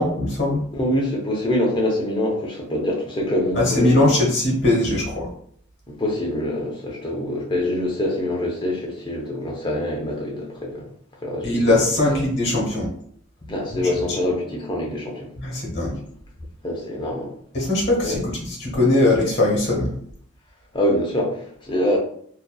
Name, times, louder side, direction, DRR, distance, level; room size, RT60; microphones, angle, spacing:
voice 1, 0.0-0.6 3.5-5.3 11.4-12.9 13.7-14.2 15.4-16.0 17.5-19.9, left 2 dB, 55° left, -3 dB, 1.0 m, -20 dB
voice 2, 0.7-4.1 5.9-10.8 11.2-11.6 12.1-12.2 13.5-15.2 16.6-17.3 18.0-18.2 20.7-22.0, left 1 dB, 20° left, -1 dB, 0.5 m, -25 dB
2.6 x 2.2 x 2.2 m, 0.62 s
head